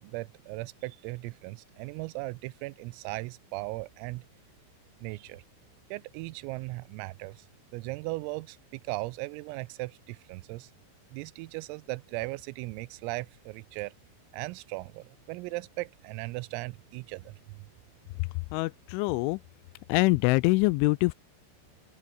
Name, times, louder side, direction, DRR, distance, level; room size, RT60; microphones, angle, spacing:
voice 1, 0.0-4.3 5.0-5.4 5.9-7.5 7.7-10.7 11.1-13.9 14.3-17.7, right 22 dB, 85° right, 3.4 m, -38 dB
voice 2, 18.2-19.4 19.9-21.1, left 24 dB, 85° left, 2.7 m, -25 dB
open air
omnidirectional pair, 5.9 m